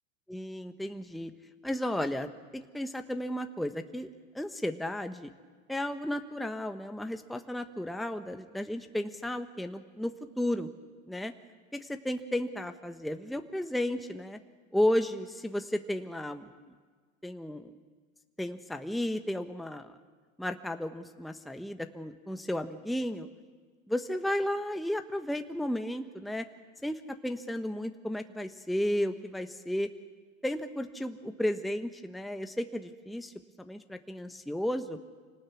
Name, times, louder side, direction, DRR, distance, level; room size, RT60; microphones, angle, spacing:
voice 1, 0.3-1.3 1.6-4.1 4.3-5.3 5.7-10.7 11.1-11.3 11.7-14.4 14.7-16.5 17.2-17.7 18.4-19.9 20.4-23.3 23.9-26.4 26.8-29.9 30.4-35.0, left 1 dB, ahead, 6 dB, 1.2 m, -33 dB
26.5 x 18.5 x 8.5 m, 1.5 s
hypercardioid pair, 95°, 42 cm